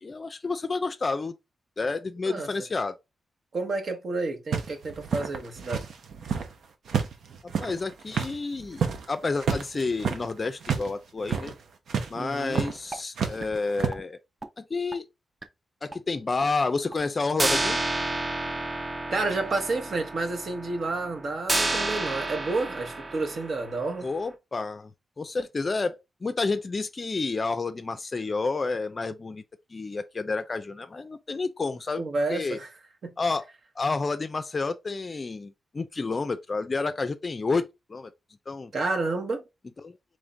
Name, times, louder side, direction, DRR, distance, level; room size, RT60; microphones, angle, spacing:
voice 1, 0.0-1.3 1.8-2.9 7.4-11.6 12.1-14.2 14.6-15.1 15.8-17.8 24.0-24.9 25.2-29.4 29.7-32.0 32.3-32.6 33.2-33.5 33.8-38.1 38.5-38.7 39.8-40.0, left 3 dB, 30° left, 0.4 m, -30 dB
voice 2, 3.5-5.8 12.1-12.6 19.1-24.1 32.0-32.7 33.0-33.1 38.7-39.4, right 3 dB, 55° right, 1.0 m, -30 dB
sound 1, 4.5-6.5 6.9-10.9 11.2-11.6 11.9-12.1 12.5-12.8 13.2-13.9, right 6 dB, 80° right, 0.8 m, -30 dB
sound 2, 12.4-12.5 12.9-13.0 13.4-13.6 13.9-14.0 14.4-14.5 14.9-15.0 15.4-15.5 15.9-16.0 16.4-16.5 16.9-17.0 17.4-24.1, right 2 dB, 25° right, 0.6 m, -30 dB
3.6 x 3.2 x 3.9 m
wide cardioid pair, 125°, 0 cm